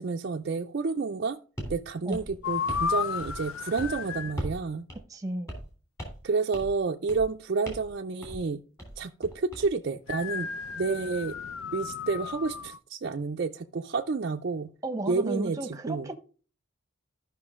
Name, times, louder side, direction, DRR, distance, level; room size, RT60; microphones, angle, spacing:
voice 1, 0.0-1.4 1.7-4.9 6.2-8.6 9.0-10.5 10.8-11.4 11.7-14.7 15.1-16.1, right 4 dB, 50° right, 0.4 m, -30 dB
sound 1, 1.6-1.8 2.1-2.9 3.2-3.5 3.8-4.0 4.4-4.6 4.9-5.0 5.5-5.7 6.0-6.3 6.5-6.8 7.1-7.3 7.7-7.9 8.2-8.4 8.8-9.7, equal, 15° left, 3.0 m, -38 dB
sound 2, 2.4-4.4 10.1-12.8, left 6 dB, 85° left, 0.5 m, -33 dB
voice 2, 5.1-5.5 14.8-16.1, right 1 dB, 15° right, 1.0 m, -33 dB
13.0 x 5.7 x 3.6 m
head